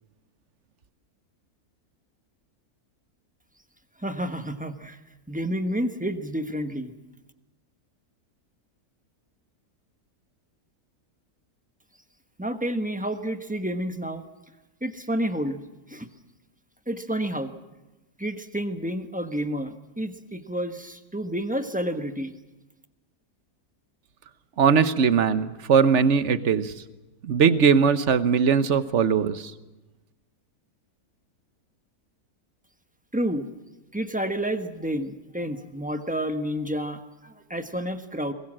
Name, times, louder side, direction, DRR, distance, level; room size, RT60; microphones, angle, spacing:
voice 1, 4.0-5.0 5.3-6.9 12.4-14.2 14.8-15.6 15.9-16.1 16.9-17.5 18.2-22.3 33.1-33.5 33.9-38.3, equal, 5° right, 7 dB, 1.0 m, -30 dB
voice 2, 24.6-26.7 27.2-29.5, right 6 dB, 55° right, 13 dB, 1.2 m, -20 dB
23.0 x 20.5 x 7.5 m, 1.0 s
omnidirectional pair, 1.6 m